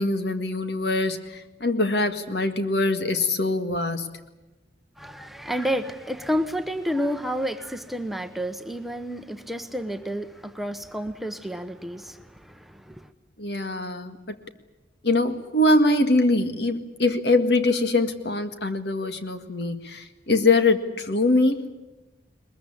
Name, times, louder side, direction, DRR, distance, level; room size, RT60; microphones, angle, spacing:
voice 1, 0.0-4.2 13.4-14.4 15.0-21.7, left 2 dB, 65° left, 8 dB, 1.8 m, -23 dB
voice 2, 5.0-13.1, equal, ahead, 7 dB, 0.9 m, -30 dB
21.5 x 21.5 x 9.9 m, 1.0 s
head